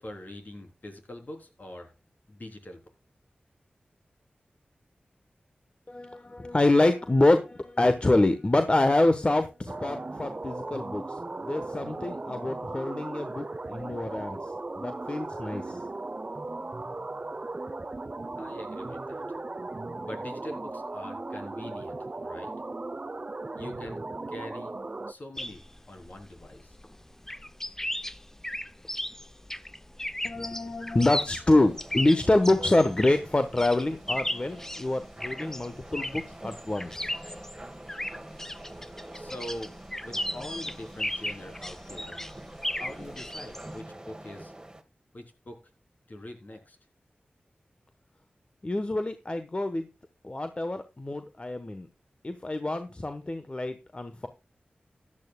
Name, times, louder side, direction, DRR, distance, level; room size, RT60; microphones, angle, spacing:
voice 1, 0.0-1.9 2.3-2.8 18.4-19.2 20.0-22.5 23.6-24.0 24.3-24.7 25.1-26.7 39.1-39.7 40.0-42.2 42.7-44.5 45.1-45.6 46.1-46.8, left 1 dB, 55° left, 3 dB, 3.5 m, -43 dB
voice 2, 5.9-11.0 11.4-14.4 14.8-15.8 30.2-36.9 48.6-49.9 50.2-51.9 52.2-54.3, left 2 dB, 35° left, 9 dB, 1.1 m, -26 dB
sound 1, 9.7-25.1, right 2 dB, 40° right, 0.7 m, -37 dB
sound 2, 25.4-43.8, left 1 dB, 10° left, 0.6 m, -36 dB
sound 3, 31.7-44.8, right 1 dB, 20° right, 1.6 m, -46 dB
15.0 x 11.0 x 2.3 m, 0.28 s
wide cardioid pair, 60°, 3 cm